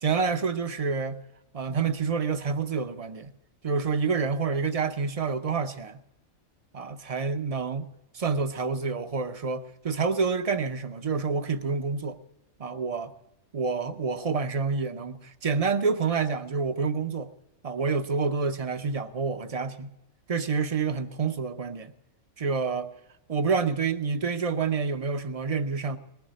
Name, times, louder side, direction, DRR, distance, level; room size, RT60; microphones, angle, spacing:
voice 1, 0.0-1.3 1.5-3.3 3.6-6.0 6.7-7.9 8.1-12.2 12.6-13.1 13.5-17.3 17.6-19.9 20.3-21.9 22.4-22.9 23.3-26.0, right 5 dB, 35° right, 0.6 m, -28 dB
19.5 x 7.0 x 9.3 m
omnidirectional pair, 1.5 m